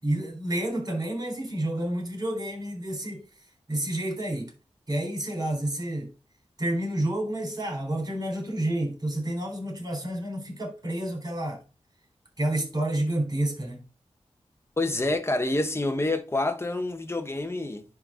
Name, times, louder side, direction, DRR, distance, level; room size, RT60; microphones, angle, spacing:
voice 1, 0.0-3.2 3.7-4.5 4.9-6.1 6.6-11.6 12.4-13.8, right 1 dB, 35° right, 4.1 m, -29 dB
voice 2, 14.8-17.8, left 2 dB, 25° left, 1.1 m, -27 dB
10.5 x 4.0 x 3.8 m
wide cardioid pair, 105°, 11 cm